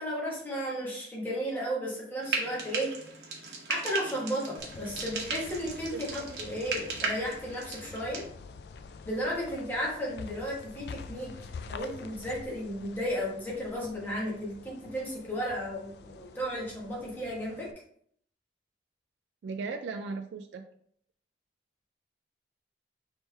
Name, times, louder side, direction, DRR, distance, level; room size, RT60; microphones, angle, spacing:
voice 1, 0.0-2.9 3.7-8.2 9.0-11.3 11.7-17.7, equal, 10° left, -4 dB, 1.3 m, -34 dB
Frying (food), 2.2-8.3, right 4 dB, 65° right, 0.9 m, -37 dB
sound 1, 4.6-17.7, left 4 dB, 65° left, 0.3 m, -47 dB
voice 2, 5.9-6.3 19.4-20.7, right 4 dB, 80° right, 6 dB, 0.3 m, -37 dB
4.5 x 3.4 x 3.2 m, 0.64 s
head